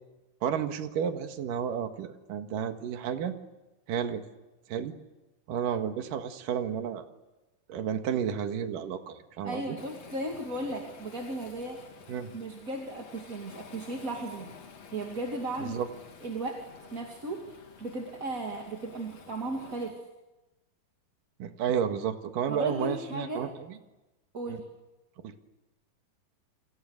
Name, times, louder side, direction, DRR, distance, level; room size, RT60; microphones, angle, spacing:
voice 1, 0.4-3.3 3.9-4.2 4.7-4.9 5.5-7.0 7.7-9.8 12.1-12.3 15.6-15.9 21.4-23.5 24.5-24.6 25.2-25.3, right 8 dB, 70° right, 7 dB, 3.2 m, -31 dB
voice 2, 9.4-11.8 12.3-14.5 14.9-15.8 16.2-16.6 16.9-20.0 22.5-23.5 24.3-24.7, right 2 dB, 25° right, 1 dB, 2.4 m, -36 dB
Waves surf, 9.8-19.9, left 5 dB, 50° left, 3.4 m, -50 dB
29.5 x 26.0 x 6.7 m, 1.0 s
omnidirectional pair, 4.1 m